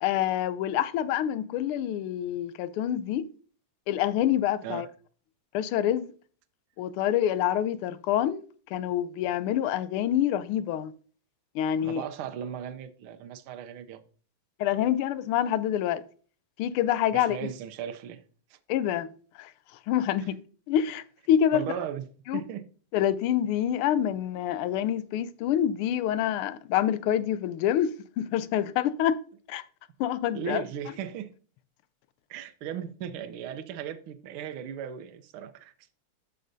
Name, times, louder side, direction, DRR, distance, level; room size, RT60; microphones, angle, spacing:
voice 1, 0.0-3.3 3.9-4.9 5.5-6.1 6.8-8.4 8.7-10.9 11.5-12.0 14.6-16.0 16.6-17.4 18.7-19.1 19.4-19.5 19.9-20.4 20.7-21.7 22.3-22.4 22.9-27.9 28.2-29.2 29.5-29.6 30.0-30.6, left 10 dB, 85° left, 1.5 m, -26 dB
voice 2, 11.8-14.0 17.1-18.2 18.5-18.6 21.5-22.0 22.3-22.6 30.3-31.3 32.3-35.7, right 8 dB, 80° right, 1.6 m, -37 dB
13.0 x 5.5 x 2.6 m
omnidirectional pair, 2.4 m